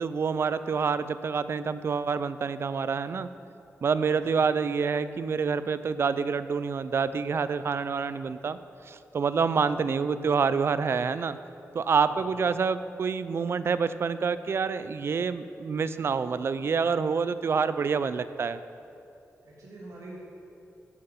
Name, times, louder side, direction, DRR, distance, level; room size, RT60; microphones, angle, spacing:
voice 1, 0.0-3.3 3.8-8.6 8.9-11.4 11.7-18.6, right 5 dB, 50° right, 13 dB, 0.4 m, -27 dB
voice 2, 19.4-20.2, right 2 dB, 80° right, -5 dB, 2.9 m, -46 dB
12.0 x 7.7 x 5.7 m, 2.7 s
wide cardioid pair, 130°, 5 cm